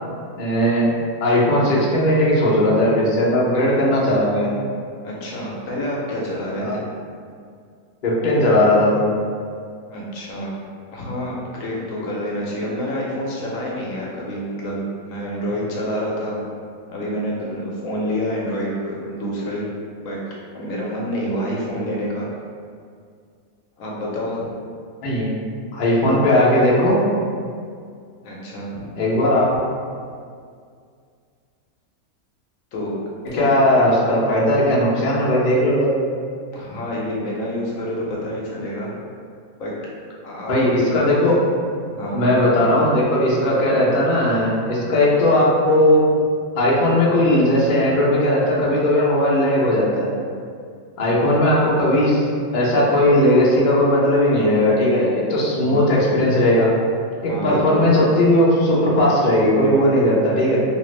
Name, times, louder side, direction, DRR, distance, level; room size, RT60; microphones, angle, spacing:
voice 1, 0.4-0.9 1.2-4.5 6.6-6.8 8.0-9.1 25.0-25.4 25.7-27.1 29.0-29.6 33.3-35.9 40.5-41.4 42.1-46.0 46.6-50.1 51.0-52.3 52.5-56.7 57.2-60.6, left 1 dB, 55° left, -6 dB, 0.6 m, -17 dB
voice 2, 5.0-6.8 9.9-10.6 10.9-16.4 16.9-19.7 20.0-20.2 20.5-22.3 23.8-24.4 28.2-28.9 32.7-32.9 33.3-33.5 36.5-38.9 39.6-39.7 40.2-40.9 42.0-42.2 55.6-55.9 57.3-57.8, equal, 70° left, -4 dB, 1.0 m, -28 dB
2.7 x 2.4 x 3.1 m, 2.2 s
omnidirectional pair, 1.5 m